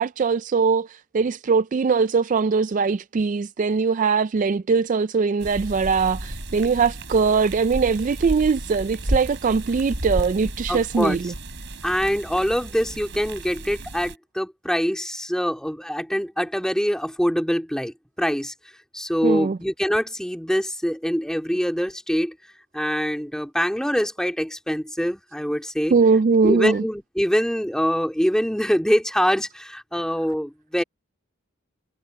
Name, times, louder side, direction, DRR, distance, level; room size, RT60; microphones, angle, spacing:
voice 1, 0.0-11.3 19.2-19.6 25.9-26.8, right 5 dB, 40° right, 0.3 m, -21 dB
sound 1, 5.4-14.2, right 1 dB, 60° right, 7.9 m, -32 dB
voice 2, 10.7-11.2 11.8-18.5 18.9-22.4 22.7-25.9 26.4-30.8, equal, 5° left, 2.2 m, -24 dB
head